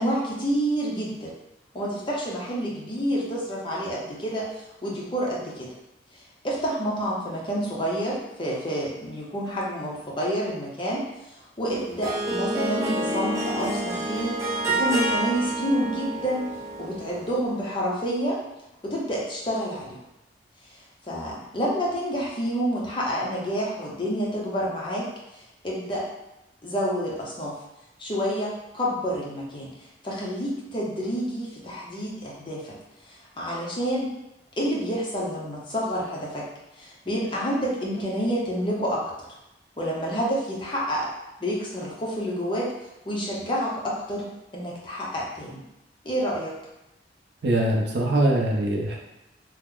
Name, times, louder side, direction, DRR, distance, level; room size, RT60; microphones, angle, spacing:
voice 1, 0.0-1.3 1.7-5.7 6.1-16.5 16.8-18.4 18.8-20.0 20.7-26.1 26.6-27.6 28.0-29.7 30.0-32.8 33.0-34.1 34.6-36.5 36.8-39.0 39.8-41.1 41.4-42.7 43.0-45.6 46.0-46.5, equal, 30° left, -5 dB, 0.7 m, -29 dB
Harp, 11.7-17.4, right 1 dB, 15° right, 0.5 m, -28 dB
voice 2, 47.4-49.0, right 1 dB, 70° right, -1 dB, 0.6 m, -22 dB
3.0 x 2.0 x 3.7 m, 0.92 s
head